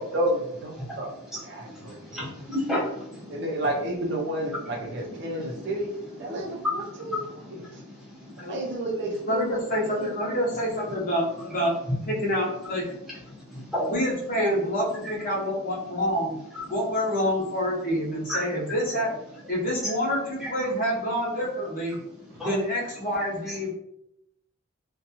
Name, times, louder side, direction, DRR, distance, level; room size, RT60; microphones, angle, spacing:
voice 1, 0.0-1.1 1.4-2.3 3.3-5.9 6.2-7.2 7.5-7.8 8.5-10.1, right 1 dB, 50° right, -1 dB, 0.5 m, -31 dB
voice 2, 1.6-3.4 5.2-5.6 6.2-8.7 11.9-12.0 13.4-13.9 16.5-16.6 18.3-18.4 20.4-20.5 22.4-22.5 23.5-23.6, left 1 dB, ahead, -8 dB, 0.8 m, -33 dB
voice 3, 9.3-11.7 12.1-12.9 13.9-16.4 16.7-19.1 19.5-22.0 22.4-23.7, equal, 40° left, -4 dB, 0.7 m, -27 dB
2.6 x 2.2 x 2.8 m, 0.79 s
head